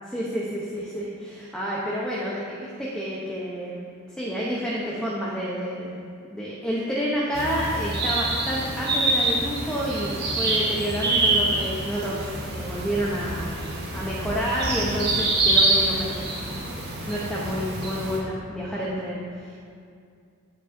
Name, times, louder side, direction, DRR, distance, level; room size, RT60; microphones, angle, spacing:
voice 1, 0.1-3.8 4.2-6.0 6.3-16.2 16.6-19.6, equal, 5° left, -6 dB, 0.8 m, -29 dB
sound 1, 7.3-18.2, right 2 dB, 50° right, 1.3 m, -26 dB
14.0 x 5.2 x 2.7 m, 2.3 s
head